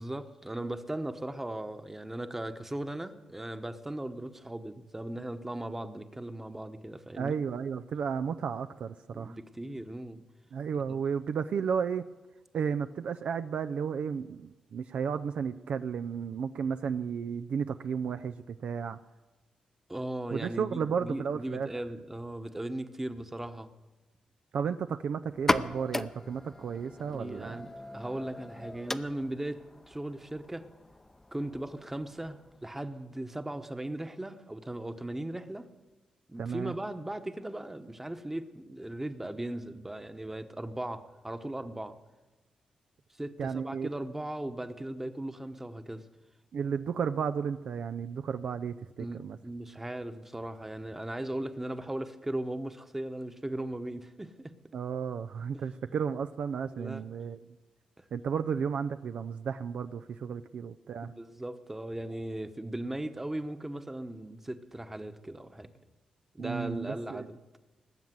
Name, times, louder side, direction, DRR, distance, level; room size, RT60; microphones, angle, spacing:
voice 1, 0.0-7.4 9.1-10.2 10.9-11.0 19.9-23.7 27.1-30.7 31.3-35.7 36.3-42.0 43.2-46.0 49.0-54.5 55.5-55.6 56.7-57.0 58.0-58.1 60.2-60.3 61.0-65.7 66.3-67.4, right 1 dB, 15° right, 9 dB, 1.1 m, -38 dB
voice 2, 7.2-9.4 10.5-12.1 12.5-19.0 20.3-21.7 24.5-27.7 36.4-36.7 43.4-43.9 46.5-49.4 54.7-57.4 58.1-61.1 66.4-67.3, right 6 dB, 70° right, 9 dB, 0.5 m, -33 dB
sound 1, 25.3-32.7, left 2 dB, 15° left, 0.7 m, -37 dB
19.0 x 7.3 x 9.3 m, 1.2 s
cardioid pair, 80°, 2 cm